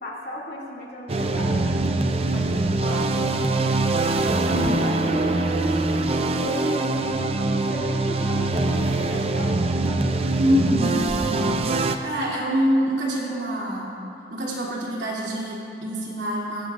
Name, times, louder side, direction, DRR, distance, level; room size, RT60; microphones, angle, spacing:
voice 1, 0.0-5.9 6.3-7.3 7.7-10.1, left 1 dB, 55° left, -5 dB, 2.4 m, -36 dB
sound 1, 1.1-12.0, right 2 dB, 30° right, 0.5 m, -23 dB
voice 2, 4.3-4.7 10.4-11.5 12.0-13.9 14.3-16.7, equal, 70° right, -5 dB, 2.9 m, -25 dB
18.5 x 15.0 x 2.5 m, 2.8 s
head